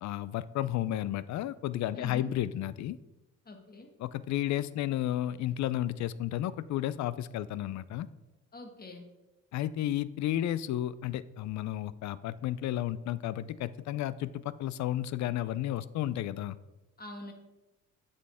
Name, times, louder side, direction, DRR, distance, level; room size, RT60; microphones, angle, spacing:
voice 1, 0.0-3.0 4.0-8.1 9.5-16.6, left 13 dB, 65° left, 17 dB, 0.4 m, -32 dB
voice 2, 1.9-2.3 3.4-3.9 8.5-9.0 17.0-17.3, left 2 dB, 30° left, 4 dB, 1.3 m, -44 dB
8.0 x 5.4 x 3.5 m, 1.0 s
cardioid pair, 90°, 30 cm